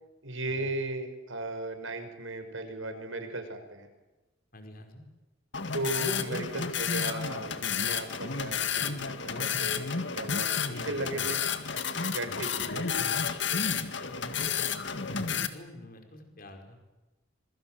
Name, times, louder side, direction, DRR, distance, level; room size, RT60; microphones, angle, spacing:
voice 1, 0.2-3.9 5.7-11.4 12.1-13.1, right 2 dB, 80° right, 7 dB, 5.8 m, -36 dB
voice 2, 4.5-5.1 13.9-16.8, left 1 dB, 45° left, 5 dB, 5.3 m, -47 dB
sound 1, 5.5-15.5, left 6 dB, 60° left, 2.1 m, -31 dB
26.0 x 24.0 x 7.8 m, 1.1 s
head